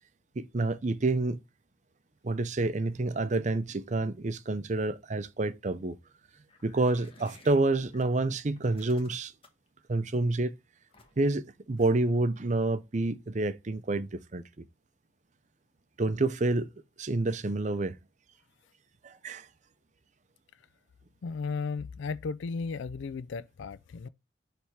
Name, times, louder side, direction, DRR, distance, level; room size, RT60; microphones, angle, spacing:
voice 1, 0.4-1.4 2.2-6.0 6.6-9.3 9.9-10.5 11.2-14.6 16.0-16.7 17.0-18.0 19.0-19.5, right 2 dB, 40° right, 0.5 m, -28 dB
sound 1, 6.5-8.1 8.6-9.7 10.9-11.4, left 3 dB, 30° left, 1.4 m, -56 dB
voice 2, 21.2-24.1, left 4 dB, 80° left, 0.4 m, -35 dB
7.1 x 3.4 x 4.7 m
head